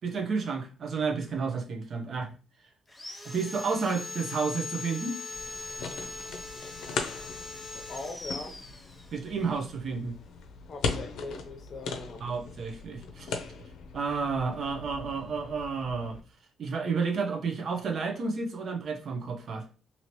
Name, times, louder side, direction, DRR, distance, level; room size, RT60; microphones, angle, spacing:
voice 1, 0.0-2.3 3.2-5.2 9.1-10.1 12.2-13.4 13.9-16.2 16.6-19.7, right 5 dB, 55° right, 0.8 m, -31 dB
Sawing, 2.9-9.4, left 3 dB, 10° left, 0.7 m, -40 dB
sound 1, 5.3-16.2, left 4 dB, 75° left, 0.5 m, -39 dB
voice 2, 7.7-8.6 10.7-12.2, left 3 dB, 45° left, 0.8 m, -41 dB
2.8 x 2.8 x 3.1 m
cardioid pair, 90°, 0 cm